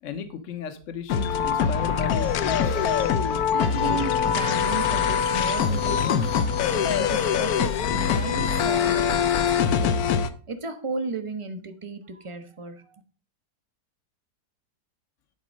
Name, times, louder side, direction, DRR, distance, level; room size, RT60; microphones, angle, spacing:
voice 1, 0.0-2.8, left 6 dB, 55° left, 9 dB, 1.3 m, -35 dB
sound 1, 1.1-10.3, left 7 dB, 70° left, 1.1 m, -23 dB
sound 2, 1.7-10.0, right 4 dB, 70° right, 2.2 m, -48 dB
voice 2, 3.5-6.4 6.7-10.1 10.5-13.0, right 3 dB, 30° right, 9 dB, 0.6 m, -34 dB
10.5 x 4.4 x 5.1 m, 0.40 s
omnidirectional pair, 1.7 m